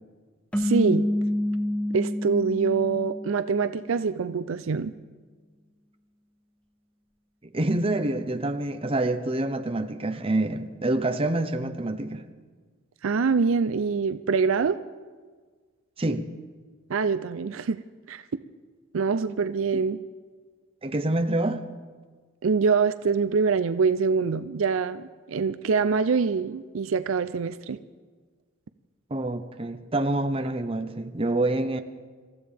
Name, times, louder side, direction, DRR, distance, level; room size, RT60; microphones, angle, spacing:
sound 1, 0.5-3.9, left 1 dB, 5° left, 0.8 m, -28 dB
voice 1, 0.6-1.1 1.9-4.9 13.0-14.8 16.9-17.8 18.1-18.2 18.9-20.0 22.4-27.8, right 5 dB, 65° right, 11 dB, 0.5 m, -24 dB
voice 2, 7.4-12.2 16.0-16.3 19.7-19.8 20.8-21.6 29.1-31.8, right 2 dB, 25° right, 8 dB, 0.8 m, -27 dB
26.5 x 14.5 x 3.5 m, 1.5 s
head